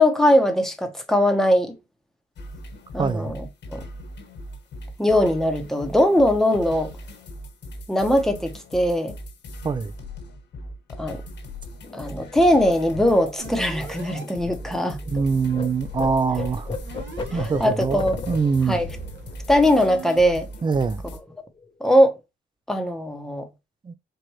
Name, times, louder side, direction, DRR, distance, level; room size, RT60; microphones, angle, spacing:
voice 1, 0.0-1.7 2.9-3.5 3.7-3.8 5.0-6.9 7.9-9.1 11.0-11.2 11.9-15.0 17.3-18.2 18.7-18.9 19.5-20.5 21.8-22.2 22.7-23.5, left 1 dB, ahead, 0.9 m, -20 dB
sound 1, 2.4-21.2, left 1 dB, 60° left, 1.5 m, -39 dB
voice 2, 3.0-3.3 9.6-9.9 15.1-16.7 17.3-18.8 20.6-21.0 23.8-23.9, right 5 dB, 25° right, 0.4 m, -24 dB
sound 2, 11.8-15.2 15.5-20.5 20.8-21.0 21.3-21.9, left 4 dB, 25° left, 0.7 m, -36 dB
sound 3, 13.4-14.2 15.1-17.6 18.5-20.2, right 4 dB, 65° right, 1.3 m, -39 dB
4.6 x 2.5 x 3.0 m
cardioid pair, 90°, 20 cm